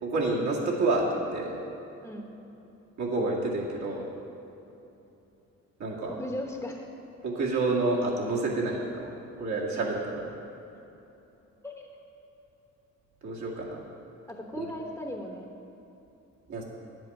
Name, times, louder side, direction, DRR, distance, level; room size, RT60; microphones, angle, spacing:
voice 1, 0.0-1.6 3.0-4.0 5.8-6.2 7.2-10.3 13.2-13.8 14.5-14.7 16.5-16.6, right 2 dB, 70° right, -4 dB, 2.2 m, -29 dB
voice 2, 6.2-6.8 11.6-11.9 14.3-15.5, left 1 dB, 10° left, 0 dB, 1.0 m, -37 dB
8.9 x 7.7 x 6.0 m, 3.0 s
cardioid pair, 90°, 30 cm